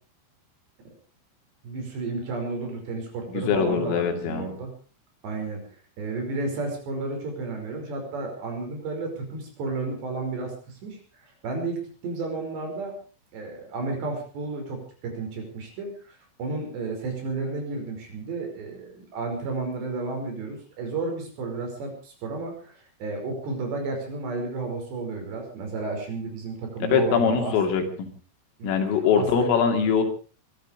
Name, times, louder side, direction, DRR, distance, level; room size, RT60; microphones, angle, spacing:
voice 1, 1.6-4.7 5.2-5.6 6.0-13.0 13.3-27.5 28.6-28.7 29.2-29.5, right 3 dB, 60° right, 3 dB, 7.2 m, -32 dB
voice 2, 3.3-4.5 26.9-28.1 28.6-30.0, left 6 dB, 85° left, 5 dB, 5.2 m, -22 dB
24.0 x 12.0 x 5.1 m, 0.38 s
omnidirectional pair, 5.7 m